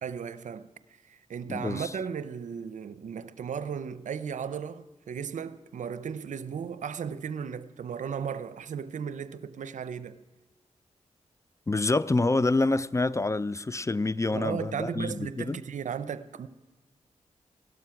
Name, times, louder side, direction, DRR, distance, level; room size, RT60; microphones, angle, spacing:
voice 1, 0.0-0.7 1.1-10.2 14.3-16.5, right 7 dB, 80° right, 0.6 m, -35 dB
voice 2, 1.5-1.9 11.7-15.6, left 2 dB, 25° left, 0.4 m, -27 dB
17.0 x 12.5 x 5.9 m
cardioid pair, 55°, 12 cm